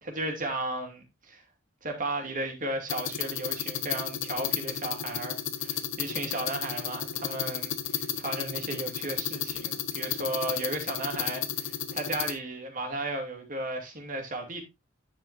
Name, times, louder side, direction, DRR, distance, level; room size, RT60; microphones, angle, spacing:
voice 1, 0.0-1.4 1.8-14.6, right 2 dB, 45° right, 2.5 m, -35 dB
sound 1, 2.9-12.3, left 9 dB, 75° left, 1.1 m, -33 dB
9.9 x 7.5 x 2.6 m
head